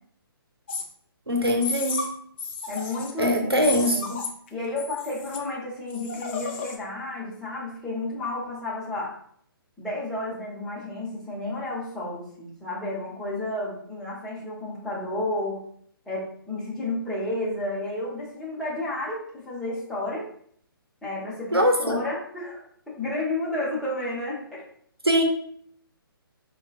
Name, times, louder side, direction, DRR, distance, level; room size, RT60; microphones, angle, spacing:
sound 1, 0.7-0.8 1.6-2.1 2.4-3.2 3.6-4.5 4.8-5.4 5.9-6.8, left 5 dB, 30° left, 0.5 m, -33 dB
voice 1, 1.3-2.0 3.2-4.2 21.5-22.0 25.0-25.2, equal, 85° right, 3 dB, 0.8 m, -22 dB
voice 2, 2.7-4.1 4.5-9.1 9.8-15.6 16.1-20.3 21.0-22.6 23.0-24.6, left 2 dB, ahead, -8 dB, 1.0 m, -31 dB
5.2 x 2.4 x 2.3 m, 0.62 s
figure-of-eight pair, 135°, 12 cm